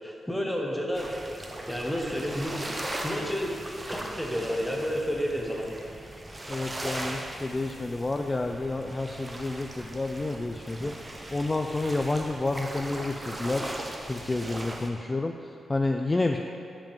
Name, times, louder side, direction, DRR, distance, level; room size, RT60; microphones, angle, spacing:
voice 1, 0.0-1.1 1.7-2.6 3.0-3.6 3.9-5.7, equal, 5° left, -1 dB, 1.1 m, -30 dB
sound 1, 0.9-14.9, right 1 dB, 25° right, 0.7 m, -39 dB
voice 2, 6.5-16.4, left 2 dB, 25° left, 4 dB, 0.3 m, -30 dB
5.2 x 5.2 x 5.2 m, 2.6 s
cardioid pair, 70°, 0 cm